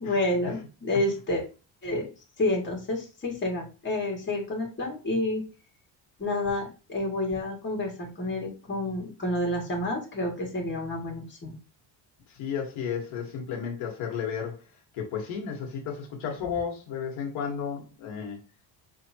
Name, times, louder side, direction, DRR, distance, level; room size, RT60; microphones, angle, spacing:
voice 1, 0.0-1.4 1.8-2.1 2.4-5.4 6.2-11.6, left 1 dB, 25° left, 2.2 m, -29 dB
voice 2, 12.3-14.6 14.9-18.4, left 7 dB, 80° left, 1.6 m, -33 dB
5.4 x 3.4 x 2.9 m
cardioid pair, 145°, 48 cm